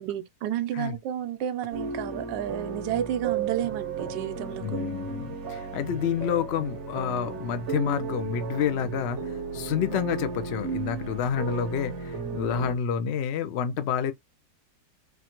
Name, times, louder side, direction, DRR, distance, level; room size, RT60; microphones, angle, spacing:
voice 1, 0.0-5.0, right 11 dB, 80° right, 1.2 m, -31 dB
sound 1, 1.7-12.8, right 5 dB, 50° right, 1.0 m, -34 dB
voice 2, 4.6-9.2 9.5-14.1, left 8 dB, 80° left, 0.5 m, -29 dB
4.2 x 2.6 x 2.9 m
omnidirectional pair, 1.9 m